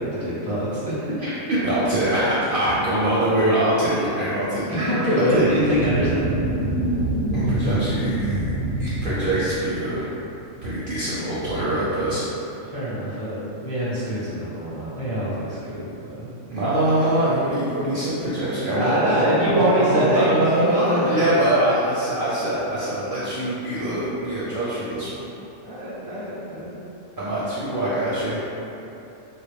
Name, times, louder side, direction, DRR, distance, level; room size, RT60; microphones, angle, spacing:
voice 1, 0.0-1.4 4.7-6.2 12.6-16.3 18.7-21.3 25.6-26.8, equal, 25° left, -10 dB, 0.5 m, -24 dB
voice 2, 1.2-4.9 5.3-5.4 7.3-8.4 8.8-10.1 10.6-12.2 16.5-25.3 27.2-28.4, right 1 dB, 60° right, -9 dB, 0.6 m, -23 dB
sound 1, 5.3-10.3, right 1 dB, 70° left, 0.9 m, -26 dB
3.4 x 2.4 x 3.3 m, 2.9 s
omnidirectional pair, 1.4 m